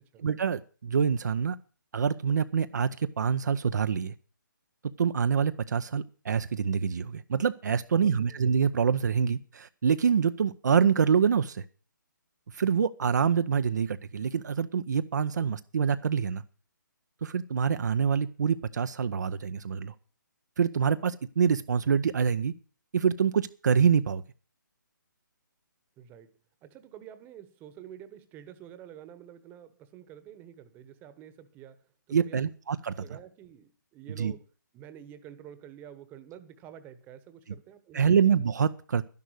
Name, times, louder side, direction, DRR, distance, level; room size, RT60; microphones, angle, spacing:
voice 1, 0.2-1.6 1.9-4.1 5.0-11.6 12.5-16.4 17.2-19.9 20.6-22.5 22.9-24.2 32.1-32.9 34.2-34.3 37.9-39.0, right 7 dB, 60° right, 0.7 m, -26 dB
voice 2, 7.9-8.4 26.0-32.4 32.9-34.4 34.7-38.3, right 10 dB, 15° right, 1.2 m, -49 dB
11.5 x 10.5 x 6.4 m
figure-of-eight pair, 145°, 11 cm